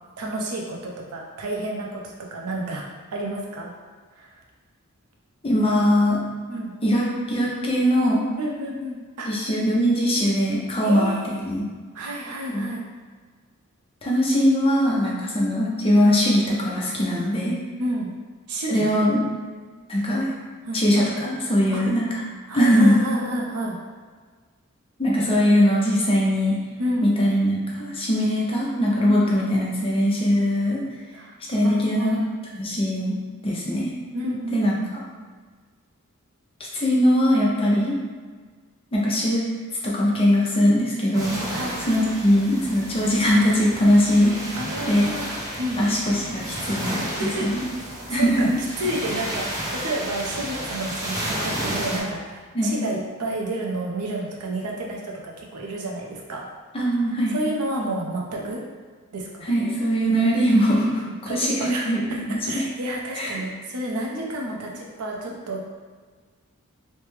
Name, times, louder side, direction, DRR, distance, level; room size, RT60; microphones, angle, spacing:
voice 1, 0.2-2.8 3.1-3.7 4.2-4.3 6.5-6.7 8.4-9.3 10.8-11.4 11.9-12.8 17.8-18.1 18.5-18.9 20.6-20.8 21.7-21.8 22.5-23.8 26.8-27.1 29.0-29.4 31.1-31.4 31.6-32.1 34.1-34.8 41.5-42.0 44.5-46.0 47.2-47.5 48.1-48.5 48.8-56.4 57.3-58.6 59.1-59.5 60.9-62.2 62.4-65.6, right 1 dB, 90° right, -1 dB, 0.6 m, -30 dB
voice 2, 5.4-6.2 6.8-8.2 9.2-11.1 11.4-11.7 12.5-12.7 14.0-17.6 18.7-19.2 19.9-20.3 20.7-22.1 22.5-23.0 25.0-26.6 27.0-30.8 31.5-32.2 32.5-33.2 33.4-33.9 34.5-34.8 36.7-38.0 38.9-39.4 39.8-41.4 41.9-44.4 44.9-45.1 45.8-47.0 47.4-47.7 48.1-48.5 52.5-52.8 56.7-57.3 59.4-62.0 62.3-62.6 63.2-63.3, equal, 25° left, -4 dB, 0.6 m, -21 dB
sound 1, 41.1-52.0, right 1 dB, 15° right, 0.5 m, -32 dB
3.1 x 2.1 x 3.2 m, 1.5 s
head